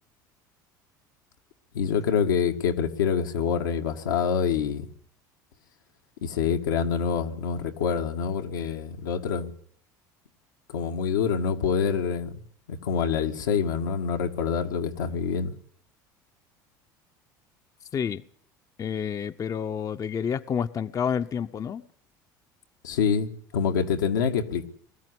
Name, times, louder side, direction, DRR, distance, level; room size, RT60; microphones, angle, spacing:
voice 1, 1.7-4.9 6.2-9.5 10.7-12.3 12.7-15.5 22.8-24.6, left 6 dB, 85° left, 1.8 m, -26 dB
voice 2, 18.8-21.8, left 7 dB, 35° left, 0.8 m, -29 dB
21.0 x 13.5 x 9.8 m
hypercardioid pair, 85°, 10 cm